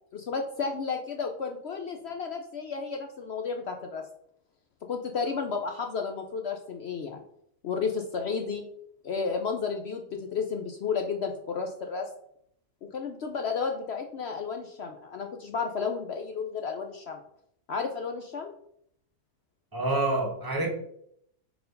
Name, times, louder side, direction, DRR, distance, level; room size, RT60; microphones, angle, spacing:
voice 1, 0.1-4.0 4.9-7.2 7.6-8.7 9.0-12.1 12.8-17.2 17.7-18.5, left 5 dB, 65° left, 4 dB, 0.7 m, -32 dB
voice 2, 19.7-20.7, right 2 dB, 15° right, 0 dB, 1.2 m, -27 dB
4.5 x 4.3 x 5.2 m, 0.71 s
omnidirectional pair, 1.6 m